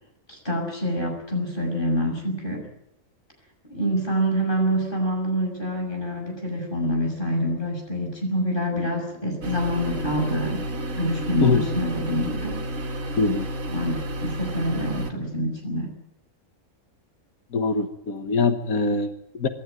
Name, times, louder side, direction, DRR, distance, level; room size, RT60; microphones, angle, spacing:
voice 1, 0.3-2.7 3.7-10.6 10.9-12.6 13.7-15.9, equal, 35° left, 2 dB, 6.6 m, -26 dB
sound 1, 9.4-15.1, right 1 dB, 65° right, 2.1 m, -31 dB
voice 2, 17.5-19.5, left 4 dB, 80° left, 7 dB, 1.7 m, -23 dB
25.5 x 13.0 x 9.2 m, 0.78 s
omnidirectional pair, 1.5 m